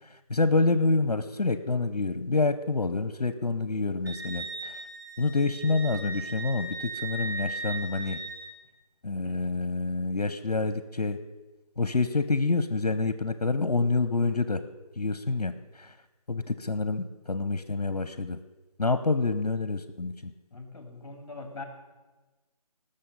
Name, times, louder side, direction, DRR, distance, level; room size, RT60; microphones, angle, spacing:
voice 1, 0.0-4.8 5.2-8.2 9.0-11.2 11.8-14.6 15.0-16.0 16.3-18.4 18.8-20.3, left 3 dB, 75° left, 12 dB, 0.8 m, -27 dB
Wind instrument woodwind instrument, 4.0-8.5, right 2 dB, 35° right, 3.2 m, -38 dB
voice 2, 20.5-21.6, left 3 dB, 40° left, 5 dB, 2.3 m, -42 dB
19.0 x 6.7 x 5.4 m, 1.2 s
figure-of-eight pair, 155°, 20 cm